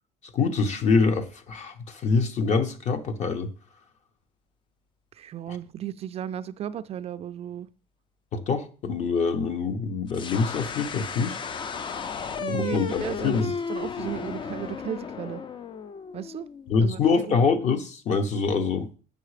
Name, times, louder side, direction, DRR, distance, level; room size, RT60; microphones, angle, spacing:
voice 1, 0.3-3.5 5.5-5.6 8.3-11.4 12.5-13.5 16.7-18.9, left 4 dB, 45° left, 1.2 m, -25 dB
voice 2, 5.1-7.7 12.3-15.4 16.1-16.5 16.8-17.4, right 10 dB, 40° right, 0.4 m, -35 dB
sound 1, 10.1-16.9, left 6 dB, 30° left, 0.5 m, -34 dB
8.1 x 5.6 x 4.9 m
cardioid pair, 140°, 16 cm